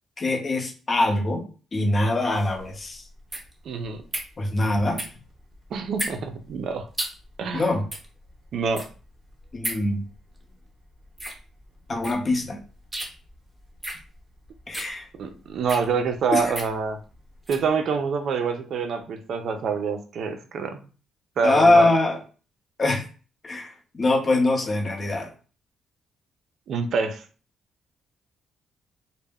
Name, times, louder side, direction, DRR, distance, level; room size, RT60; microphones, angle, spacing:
voice 1, 0.2-1.4 1.7-3.0 4.4-5.0 7.5-7.8 9.5-10.0 11.9-12.6 14.7-15.0 16.3-16.5 21.4-22.2 22.8-23.0 23.4-25.3, left 2 dB, 35° left, 2 dB, 0.7 m, -23 dB
sound 1, 2.3-17.7, right 1 dB, 15° right, 0.7 m, -37 dB
voice 2, 3.7-4.0 5.7-6.9 7.4-7.7 8.5-8.9 15.2-17.0 17.5-20.8 21.4-21.9 26.7-27.2, right 5 dB, 65° right, 7 dB, 0.4 m, -26 dB
2.1 x 2.0 x 3.4 m, 0.37 s
cardioid pair, 90°, 0 cm